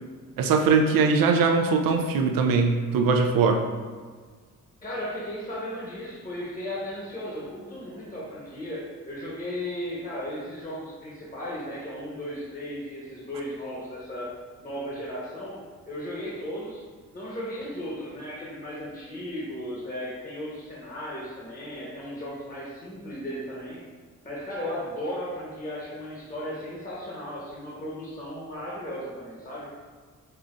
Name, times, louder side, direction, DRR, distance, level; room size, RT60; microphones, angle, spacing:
voice 1, 0.4-3.6, right 4 dB, 70° right, 4 dB, 0.5 m, -21 dB
voice 2, 4.8-14.4 14.6-16.8 17.1-23.8 24.2-29.7, equal, 25° left, -6 dB, 1.1 m, -35 dB
5.5 x 2.4 x 2.5 m, 1.5 s
cardioid pair, 65°, 35 cm